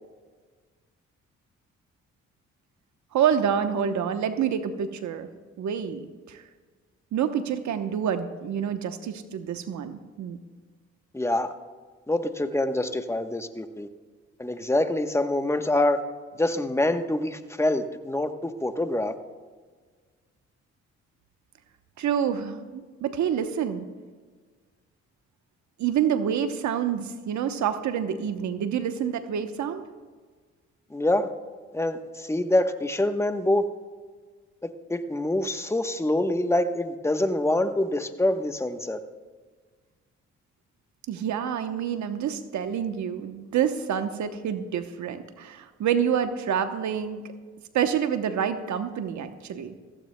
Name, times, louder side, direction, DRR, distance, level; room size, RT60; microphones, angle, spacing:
voice 1, 3.1-5.3 5.6-6.4 7.1-10.4 22.0-23.9 25.8-29.8 41.1-47.2 47.7-49.7, right 8 dB, 70° right, 8 dB, 0.9 m, -27 dB
voice 2, 11.1-11.5 12.1-13.9 14.4-16.0 16.4-19.1 30.9-31.3 31.7-33.6 34.6-39.0, left 1 dB, 10° left, 8 dB, 1.0 m, -25 dB
16.5 x 15.0 x 2.2 m, 1.5 s
supercardioid pair, 55°, 30 cm